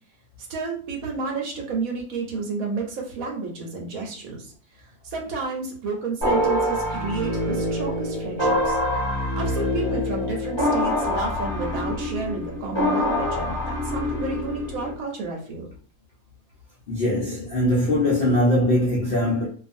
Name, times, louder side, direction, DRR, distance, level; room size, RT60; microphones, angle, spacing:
voice 1, 0.4-8.8 9.4-15.7, right 4 dB, 65° right, 1.0 m, -31 dB
sound 1, 6.2-14.9, left 1 dB, 20° right, 0.7 m, -25 dB
voice 2, 16.9-19.5, left 1 dB, 80° left, 0.5 m, -21 dB
2.5 x 2.4 x 2.5 m
omnidirectional pair, 1.7 m